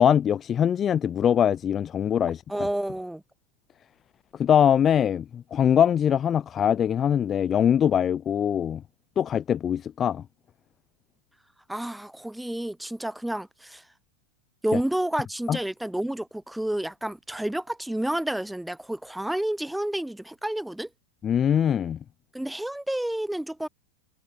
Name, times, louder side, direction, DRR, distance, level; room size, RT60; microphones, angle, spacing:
voice 1, 0.0-2.4 4.4-8.8 9.2-10.2 15.5-15.6 21.2-22.0, left 9 dB, 25° left, 2.1 m, -22 dB
voice 2, 2.5-3.2 11.7-13.8 14.6-20.9 22.3-23.7, right 1 dB, 5° right, 7.7 m, -30 dB
figure-of-eight pair, 90°, 0 cm